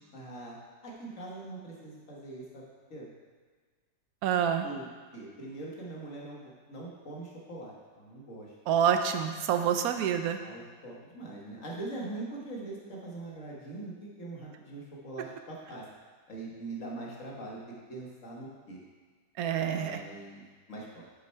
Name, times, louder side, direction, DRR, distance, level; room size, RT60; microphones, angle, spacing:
voice 1, 0.1-0.6 0.8-2.6 2.9-3.1 4.6-8.5 10.4-15.8 16.3-17.6 17.9-18.8 19.7-21.0, right 2 dB, 45° left, -3 dB, 1.6 m, -42 dB
voice 2, 4.2-4.7 8.7-10.4 19.4-20.0, right 8 dB, 70° right, 7 dB, 0.9 m, -27 dB
6.6 x 6.5 x 4.5 m, 1.5 s
omnidirectional pair, 1.9 m